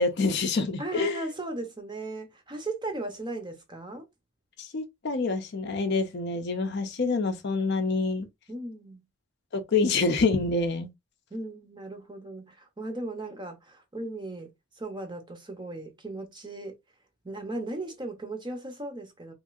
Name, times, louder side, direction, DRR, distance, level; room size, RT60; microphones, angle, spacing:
voice 1, 0.0-1.2 4.6-8.3 9.5-10.9, left 3 dB, 50° left, 0.5 m, -26 dB
voice 2, 0.8-4.1 8.5-9.0 11.3-16.8 17.2-19.3, right 2 dB, 20° right, 0.6 m, -37 dB
3.0 x 2.6 x 2.4 m
head